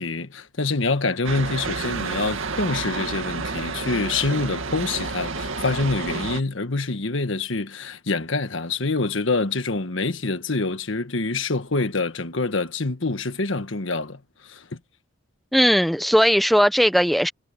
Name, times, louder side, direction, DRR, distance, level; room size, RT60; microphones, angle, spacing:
voice 1, 0.0-14.8, left 3 dB, 70° left, 1.4 m, -26 dB
sound 1, 1.2-6.4, right 4 dB, 75° right, 2.2 m, -30 dB
voice 2, 15.5-17.3, equal, ahead, 1.0 m, -18 dB
head